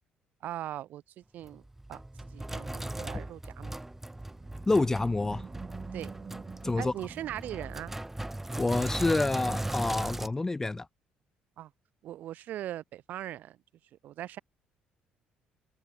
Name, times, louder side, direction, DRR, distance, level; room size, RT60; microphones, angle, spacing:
voice 1, 0.4-1.6 1.9-3.8 5.9-6.1 6.7-7.9 11.6-11.7 12.0-13.6 14.0-14.4, right 12 dB, 70° right, 5.5 m, -40 dB
Sink (filling or washing), 1.4-10.3, right 1 dB, 10° right, 1.5 m, -38 dB
Animal, 4.0-8.3, right 5 dB, 35° right, 2.5 m, -47 dB
voice 2, 4.7-5.4 6.6-6.9 8.6-10.9, left 2 dB, 15° left, 0.4 m, -27 dB
cardioid pair, 90°, 3 cm